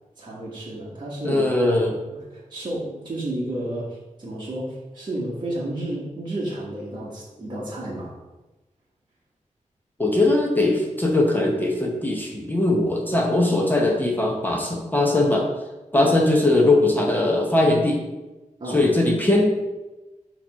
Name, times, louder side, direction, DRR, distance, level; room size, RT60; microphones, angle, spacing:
voice 1, 0.2-1.4 2.1-8.1 15.9-16.1 18.6-18.8, right 1 dB, 35° right, -7 dB, 1.3 m, -31 dB
voice 2, 1.2-1.9 10.0-15.5 15.9-18.0 18.7-19.5, left 2 dB, 15° left, 0 dB, 0.8 m, -20 dB
6.9 x 3.0 x 5.4 m, 1.1 s
wide cardioid pair, 180°, 13 cm